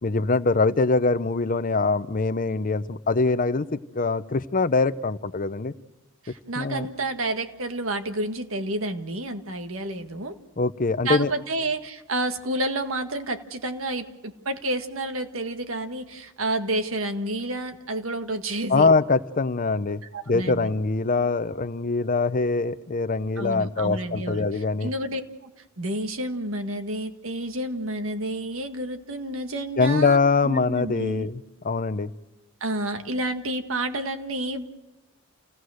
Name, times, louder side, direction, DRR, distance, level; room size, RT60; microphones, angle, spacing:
voice 1, 0.0-5.7 6.6-6.9 10.6-11.3 18.7-24.9 29.8-31.4 31.6-32.1, left 3 dB, 40° left, 13 dB, 0.7 m, -23 dB
voice 2, 6.2-10.4 11.0-18.9 20.1-20.7 23.4-25.5 25.8-30.2 30.4-31.3 32.6-34.7, right 1 dB, 70° right, 7 dB, 1.7 m, -30 dB
28.5 x 17.0 x 6.4 m, 1.1 s
head